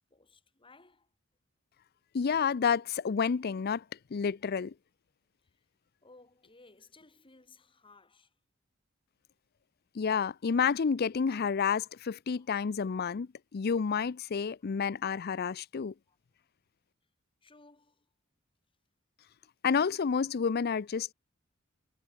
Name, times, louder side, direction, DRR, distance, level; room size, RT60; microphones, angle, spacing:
voice 1, 0.1-1.1 6.0-8.3 12.4-12.5 14.6-14.7 16.1-16.2 17.4-18.1, left 3 dB, 25° left, 2.6 m, -59 dB
voice 2, 2.1-3.8 4.1-4.7 9.9-15.9 19.6-21.1, left 6 dB, 50° left, 0.5 m, -30 dB
head